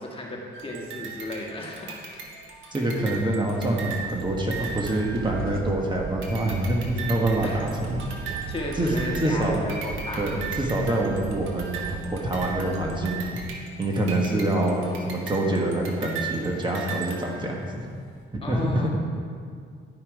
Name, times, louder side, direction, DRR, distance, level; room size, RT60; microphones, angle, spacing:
voice 1, 0.0-2.0 7.4-7.6 8.2-10.4 18.4-18.9, left 1 dB, 25° left, -1 dB, 1.6 m, -34 dB
sound 1, 0.5-5.8 6.2-17.8, right 5 dB, 80° right, 1.4 m, -38 dB
voice 2, 2.7-8.0 8.8-8.9 9.2-9.6 10.2-13.2 13.8-17.8 18.3-18.9, right 1 dB, 25° right, -1 dB, 1.3 m, -26 dB
sound 2, 3.4-14.0, right 5 dB, 50° right, 0.5 m, -38 dB
11.0 x 5.7 x 4.8 m, 2.2 s
cardioid pair, 90°, 20 cm